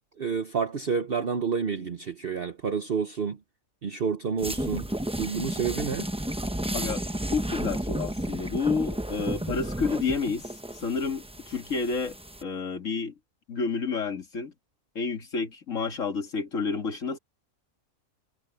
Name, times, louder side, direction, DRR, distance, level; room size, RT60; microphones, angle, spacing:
voice 1, 0.2-3.4 3.8-4.9 5.2-6.1, right 6 dB, 45° right, 1.2 m, -29 dB
sound 1, 4.4-12.4, right 1 dB, 5° right, 0.6 m, -32 dB
voice 2, 7.3-10.5 10.8-12.1 12.4-13.1 13.5-14.5 15.0-17.2, left 4 dB, 70° left, 2.5 m, -30 dB
omnidirectional pair, 1.4 m